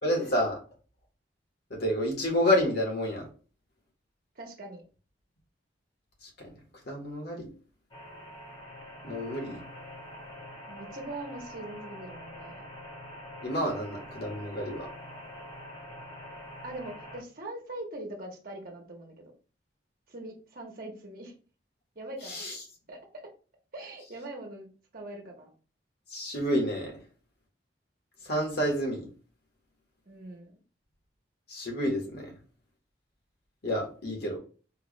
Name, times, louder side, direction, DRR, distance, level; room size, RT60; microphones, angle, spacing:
voice 1, 0.0-0.6 1.7-3.3 6.2-6.5 6.9-7.5 9.0-9.6 13.4-14.9 22.2-22.6 26.1-27.0 28.2-29.1 31.5-32.3 33.6-34.4, equal, 60° left, 0 dB, 1.4 m, -29 dB
voice 2, 4.4-4.8 10.7-12.6 16.6-19.1 20.1-21.3 21.9-22.4 22.9-23.0 23.7-24.7 24.9-25.5 30.1-30.5, right 1 dB, 55° right, 0 dB, 1.1 m, -42 dB
sound 1, 7.9-17.2, equal, 25° left, 0.8 m, -45 dB
4.5 x 2.4 x 3.1 m, 0.38 s
head